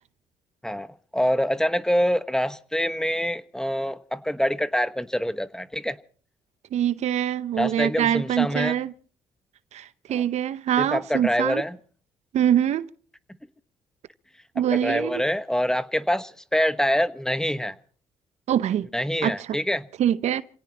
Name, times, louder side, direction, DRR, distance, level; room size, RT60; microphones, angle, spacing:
voice 1, 1.1-6.0 7.6-8.8 10.1-10.2 10.8-11.8 14.6-17.7 18.9-19.9, equal, 5° left, 1.2 m, -25 dB
voice 2, 6.7-8.9 9.7-11.6 12.3-12.9 14.6-15.2 18.5-18.9 19.2-19.3 20.0-20.4, right 10 dB, 65° right, 0.8 m, -24 dB
28.0 x 17.5 x 2.9 m
supercardioid pair, 65°, 12 cm